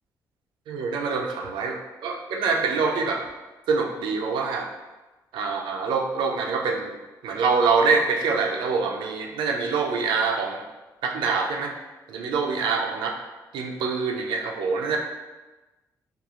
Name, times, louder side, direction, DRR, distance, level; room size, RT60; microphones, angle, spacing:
voice 1, 0.7-3.2 3.7-4.7 5.3-6.9 7.2-10.6 11.0-11.7 12.1-13.1 13.5-15.0, right 4 dB, 85° right, 2 dB, 0.4 m, -25 dB
2.8 x 2.3 x 2.3 m, 1.1 s
cardioid pair, 65°, 8 cm